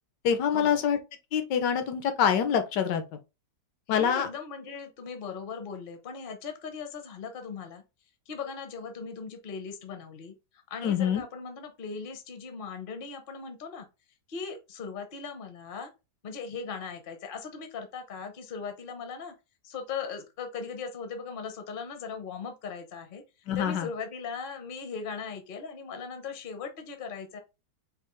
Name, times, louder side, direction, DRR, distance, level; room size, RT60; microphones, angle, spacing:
voice 1, 0.2-1.0 1.3-3.0 3.9-4.3 10.8-11.2 23.5-23.9, left 8 dB, 80° left, 1.4 m, -25 dB
voice 2, 3.9-7.8 8.3-13.9 14.3-15.9 16.2-19.3 19.6-23.2 23.6-27.4, left 5 dB, 45° left, 0.7 m, -39 dB
4.7 x 2.5 x 3.0 m
omnidirectional pair, 1.9 m